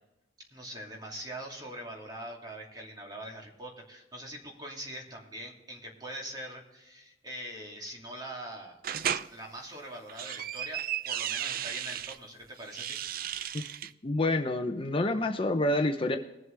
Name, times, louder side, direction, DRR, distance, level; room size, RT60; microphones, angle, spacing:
voice 1, 0.5-8.8 9.3-13.0, right 1 dB, 25° right, -1 dB, 2.6 m, -43 dB
sound 1, 8.8-9.3 9.9-12.2 12.6-13.9, right 10 dB, 55° right, 0.4 m, -34 dB
voice 2, 14.0-16.2, left 2 dB, 30° left, 6 dB, 0.6 m, -28 dB
21.0 x 7.7 x 3.3 m, 0.99 s
head